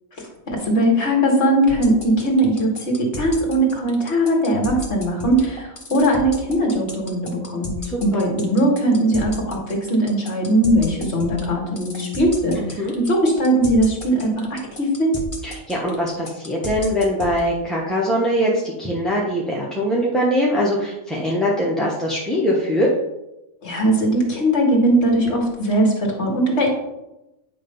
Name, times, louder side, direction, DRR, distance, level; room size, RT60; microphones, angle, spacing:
voice 1, 0.2-7.7 8.0-15.1 23.6-26.7, right 1 dB, 50° left, 0 dB, 2.0 m, -20 dB
sound 1, 1.7-17.4, left 3 dB, 25° left, 1.1 m, -33 dB
voice 2, 7.8-8.2 12.6-12.9 15.4-22.9, equal, ahead, -5 dB, 0.9 m, -22 dB
9.4 x 3.3 x 5.5 m, 0.92 s
omnidirectional pair, 1.6 m